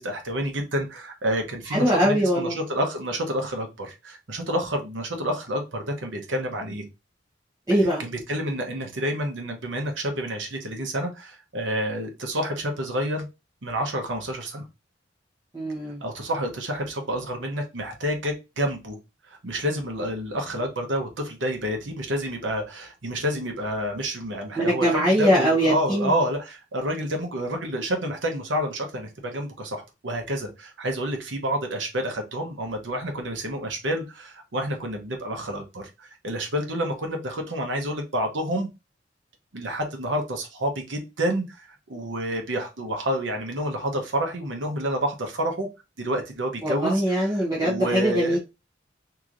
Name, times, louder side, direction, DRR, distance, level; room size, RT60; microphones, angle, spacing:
voice 1, 0.0-6.8 7.7-13.3 13.6-14.6 16.0-19.0 19.3-38.7 39.5-45.7 46.0-48.4, equal, 80° right, 4 dB, 0.9 m, -29 dB
voice 2, 1.7-2.5 7.7-8.0 15.5-16.0 24.6-26.1 46.6-48.4, equal, 20° right, -7 dB, 1.0 m, -22 dB
3.1 x 2.9 x 2.5 m, 0.26 s
head